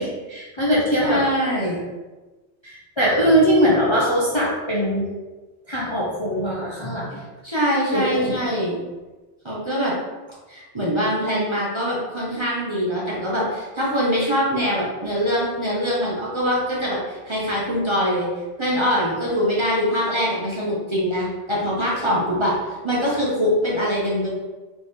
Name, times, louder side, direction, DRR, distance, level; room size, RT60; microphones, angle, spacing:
voice 1, 0.0-1.2 2.6-5.1 5.7-7.2 7.9-8.4, equal, 30° left, -6 dB, 0.7 m, -21 dB
voice 2, 1.0-1.8 7.4-8.8 9.4-9.9 10.5-18.3 18.6-24.3, equal, 25° right, -6 dB, 0.9 m, -23 dB
3.4 x 3.3 x 4.3 m, 1.2 s
omnidirectional pair, 1.2 m